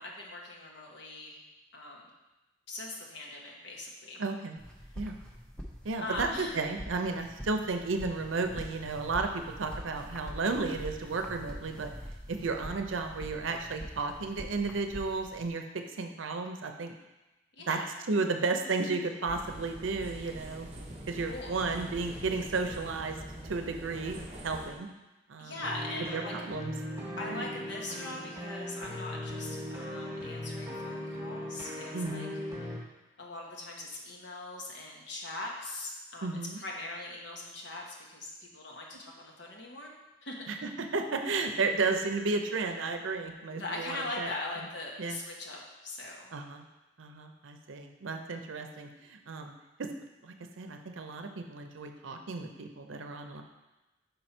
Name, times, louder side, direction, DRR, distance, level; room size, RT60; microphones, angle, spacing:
voice 1, 0.0-1.4 1.7-2.1 2.7-4.2 6.0-6.6 17.6-17.8 21.3-21.5 25.4-26.3 27.2-32.3 32.6-32.8 33.2-39.9 40.2-40.5 43.6-46.3, left 2 dB, 65° left, -1 dB, 1.0 m, -41 dB
voice 2, 4.2-4.6 5.0-5.1 5.8-11.9 12.3-16.9 17.7-17.8 18.1-20.7 21.1-23.2 23.5-24.9 25.3-25.6 26.1-26.7 27.2-27.5 31.9-32.4 36.2-36.6 40.5-40.6 40.9-44.3 45.0-45.2 46.3-46.6 47.0-49.5 49.8-49.9 50.2-53.4, right 3 dB, 80° right, 5 dB, 0.6 m, -33 dB
sound 1, 4.6-15.5, equal, 5° left, 0.6 m, -45 dB
sound 2, 19.3-24.7, right 1 dB, 35° right, 0.8 m, -44 dB
sound 3, 25.6-32.8, left 1 dB, 15° right, 1.3 m, -39 dB
5.4 x 4.3 x 4.4 m, 1.0 s
head